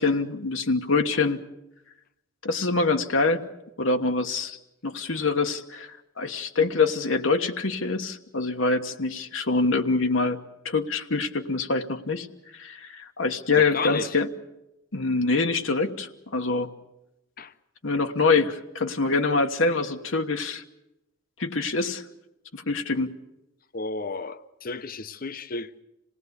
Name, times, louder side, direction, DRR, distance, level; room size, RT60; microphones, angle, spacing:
voice 1, 0.0-1.4 2.4-3.4 3.8-4.6 4.8-10.4 10.6-12.3 12.5-14.3 14.9-16.7 17.8-20.6 21.4-22.0 22.5-23.1, left 3 dB, 80° left, 1.3 m, -25 dB
voice 2, 13.5-14.2 17.4-17.5 23.7-25.8, left 4 dB, 45° left, 0.8 m, -33 dB
27.0 x 18.0 x 8.2 m
head